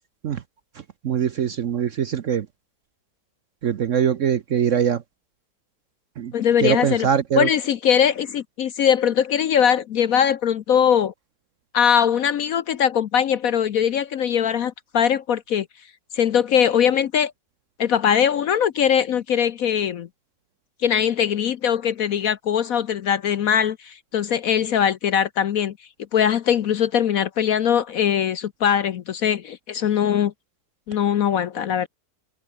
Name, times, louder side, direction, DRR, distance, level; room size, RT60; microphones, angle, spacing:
voice 1, 1.0-2.5 3.6-5.0 6.2-6.3 6.6-7.5, right 8 dB, 55° right, 0.9 m, -22 dB
voice 2, 6.3-7.1 7.4-11.1 11.7-15.7 16.1-17.3 17.8-20.1 20.8-25.7 26.1-30.3 30.9-31.9, left 8 dB, 60° left, 1.0 m, -21 dB
omnidirectional pair, 2.0 m